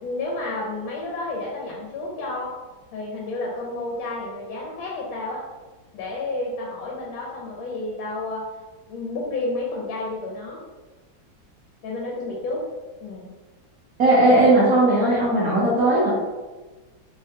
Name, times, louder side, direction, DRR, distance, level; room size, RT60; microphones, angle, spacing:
voice 1, 0.0-2.5 2.9-5.4 5.9-8.5 8.9-10.6 11.8-12.6 13.0-13.3, left 2 dB, 80° left, -3 dB, 1.5 m, -30 dB
voice 2, 14.0-16.1, right 1 dB, 60° right, -7 dB, 1.1 m, -17 dB
3.8 x 3.3 x 2.7 m, 1.2 s
omnidirectional pair, 2.1 m